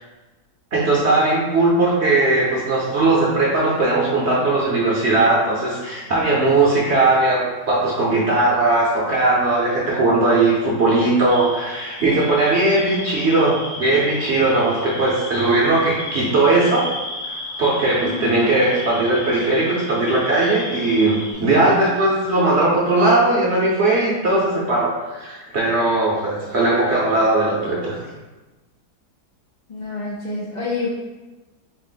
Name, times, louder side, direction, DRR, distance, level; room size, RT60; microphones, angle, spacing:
voice 1, 0.7-16.9 17.6-28.0, right 2 dB, 55° right, -5 dB, 0.8 m, -18 dB
sound 1, 11.3-21.3, left 2 dB, 60° left, 1.1 m, -34 dB
voice 2, 18.0-18.4 29.7-30.9, left 3 dB, 75° left, -7 dB, 0.4 m, -27 dB
4.7 x 2.0 x 3.8 m, 1.2 s
omnidirectional pair, 1.7 m